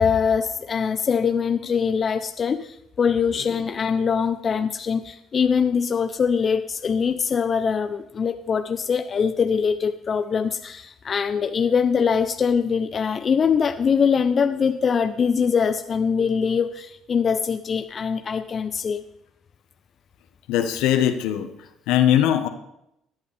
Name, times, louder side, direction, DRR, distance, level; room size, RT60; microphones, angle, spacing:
voice 1, 0.0-19.0, left 6 dB, 45° left, 9 dB, 0.7 m, -23 dB
voice 2, 20.5-22.5, left 11 dB, 75° left, 8 dB, 1.3 m, -21 dB
18.0 x 11.0 x 3.5 m, 0.80 s
hypercardioid pair, 60°, 0 cm